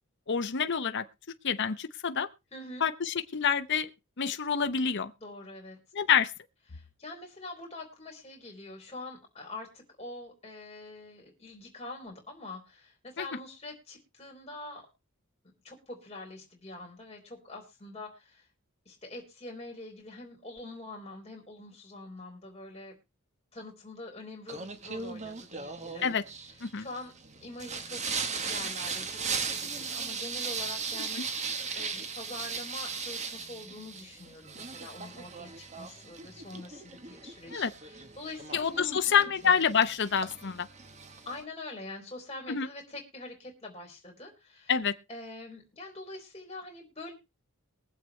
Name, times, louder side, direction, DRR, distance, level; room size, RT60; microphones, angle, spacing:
voice 1, 0.3-1.0 1.4-2.3 2.8-3.9 4.2-5.1 5.9-6.3 13.2-13.3 26.0-26.2 26.6-26.9 37.5-37.7 38.5-40.7 42.5-42.7 44.7-44.9, left 7 dB, 55° left, 0.8 m, -27 dB
voice 2, 2.5-2.8 5.2-5.8 6.7-14.8 15.6-18.5 18.9-23.0 23.5-26.1 26.8-27.1 27.4-28.0 28.4-39.5 41.3-44.7 45.1-47.1, left 2 dB, 25° left, 3.9 m, -45 dB
Singing, 24.5-41.4, right 5 dB, 30° right, 1.2 m, -38 dB
23.0 x 7.7 x 3.2 m
head